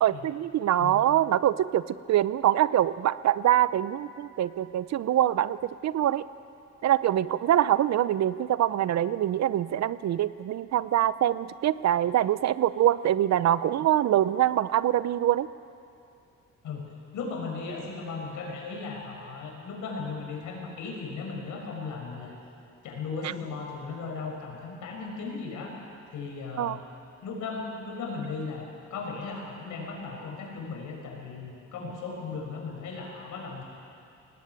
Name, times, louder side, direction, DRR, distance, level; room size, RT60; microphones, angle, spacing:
voice 1, 0.0-6.2 6.8-15.5 26.6-26.8, right 12 dB, 60° right, 16 dB, 0.7 m, -24 dB
voice 2, 16.6-22.3 22.8-25.7 26.1-26.8 27.2-33.6, left 4 dB, 80° left, 0 dB, 5.9 m, -36 dB
20.0 x 18.5 x 9.1 m, 2.6 s
cardioid pair, 90°, 30 cm